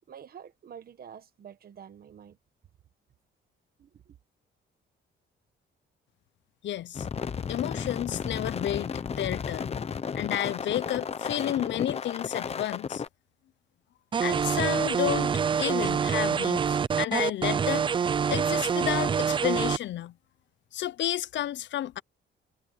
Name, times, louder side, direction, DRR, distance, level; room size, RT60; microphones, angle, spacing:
voice 1, 0.1-2.4 3.8-4.1, right 8 dB, 45° right, 1.3 m, -48 dB
voice 2, 6.6-7.1 7.5-9.8 10.1-13.0 14.2-15.3 15.6-17.9 18.3-20.1 20.7-22.0, left 12 dB, 60° left, 0.5 m, -31 dB
sound 1, 6.9-13.1, left 6 dB, 30° left, 0.8 m, -33 dB
sound 2, 14.1-19.8, right 6 dB, 25° right, 0.4 m, -26 dB
cardioid pair, 165°, 21 cm